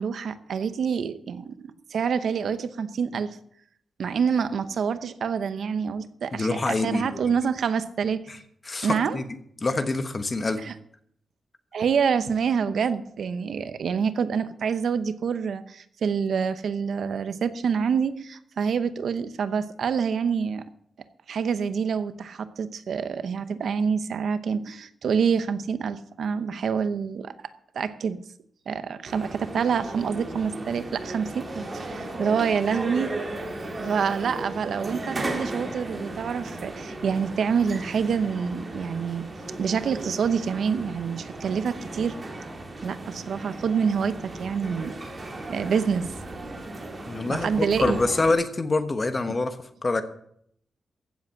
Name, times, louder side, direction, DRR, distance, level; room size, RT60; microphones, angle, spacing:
voice 1, 0.0-1.6 1.9-3.3 4.0-8.2 8.8-9.2 10.6-10.7 11.7-20.6 21.3-27.3 27.7-28.2 28.7-33.2 33.8-39.3 39.6-42.2 42.8-44.9 45.5-46.1 47.3-48.0, right 6 dB, 65° right, 12 dB, 0.8 m, -27 dB
voice 2, 6.3-7.3 8.3-8.4 8.7-9.2 9.6-10.6 47.1-49.6 49.8-50.0, left 3 dB, 25° left, 8 dB, 1.2 m, -26 dB
sound 1, 29.1-48.3, right 2 dB, 25° right, 2.6 m, -36 dB
15.5 x 7.7 x 7.4 m, 0.68 s
wide cardioid pair, 155°, 0 cm